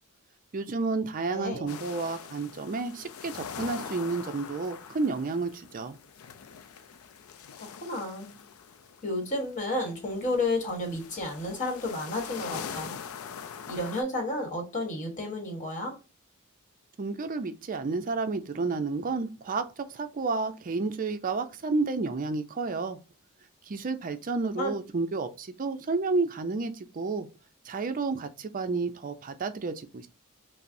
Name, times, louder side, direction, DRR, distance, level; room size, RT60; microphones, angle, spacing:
voice 1, 0.5-6.0 17.0-23.0 23.7-27.3 27.7-30.1, right 3 dB, 40° right, 0.4 m, -31 dB
voice 2, 1.3-1.7 7.8-8.3 9.0-13.0 13.7-15.9 24.6-24.7, left 1 dB, 35° left, 1.3 m, -31 dB
sound 1, 1.7-14.0, left 7 dB, 70° left, 0.4 m, -43 dB
5.5 x 2.0 x 2.6 m
head